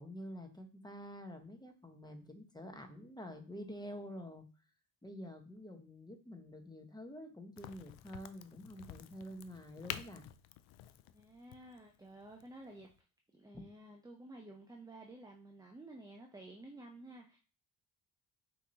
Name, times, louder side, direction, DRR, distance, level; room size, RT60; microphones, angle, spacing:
voice 1, 0.0-4.5 5.0-10.3 13.5-13.6, equal, 10° left, 4 dB, 1.2 m, -48 dB
Crack, 7.6-13.0, left 12 dB, 65° left, 0.5 m, -50 dB
voice 2, 11.1-12.9 13.3-17.4, right 2 dB, 10° right, 1 dB, 0.6 m, -52 dB
5.7 x 2.8 x 2.8 m, 0.35 s
hypercardioid pair, 50°, 50 cm